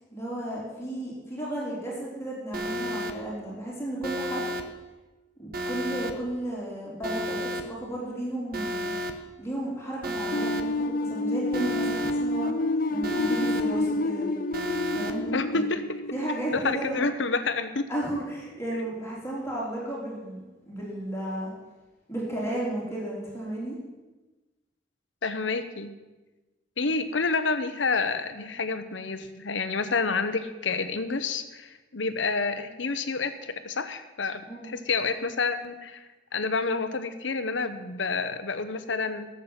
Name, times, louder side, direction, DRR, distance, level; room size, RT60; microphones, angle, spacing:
voice 1, 0.1-4.5 5.4-8.9 9.4-12.5 12.9-14.3 14.9-15.7 16.1-17.1 17.9-21.5 22.1-23.8 34.5-34.7, right 1 dB, 15° left, -5 dB, 3.6 m, -33 dB
Alarm, 2.5-3.1 4.0-4.6 5.5-6.1 7.0-7.6 8.5-9.1 10.0-10.6 11.5-12.1 13.0-13.6 14.5-15.1, equal, 55° right, 1.0 m, -31 dB
sound 1, 10.3-17.2, left 2 dB, 50° left, 0.5 m, -29 dB
voice 2, 15.3-16.0 16.5-17.9 25.2-25.9 26.8-39.3, left 4 dB, 75° left, 10 dB, 1.0 m, -29 dB
12.5 x 7.5 x 7.3 m, 1.2 s
head